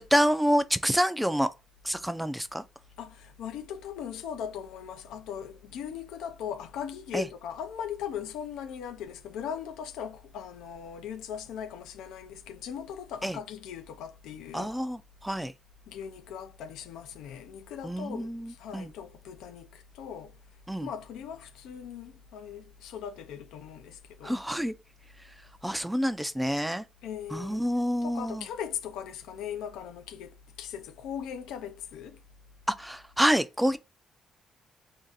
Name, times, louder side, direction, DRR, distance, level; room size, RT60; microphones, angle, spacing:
voice 1, 0.1-1.5 1.8-2.6 7.1-7.3 13.2-13.4 14.5-15.5 17.8-18.9 20.7-20.9 24.2-24.7 25.6-26.8 27.3-28.5 32.7-33.8, equal, 5° right, 0.4 m, -27 dB
voice 2, 3.0-14.7 15.9-20.3 20.8-24.4 27.0-27.7 28.0-32.2, left 8 dB, 90° left, 0.5 m, -39 dB
2.6 x 2.5 x 3.9 m
cardioid pair, 90°, 0 cm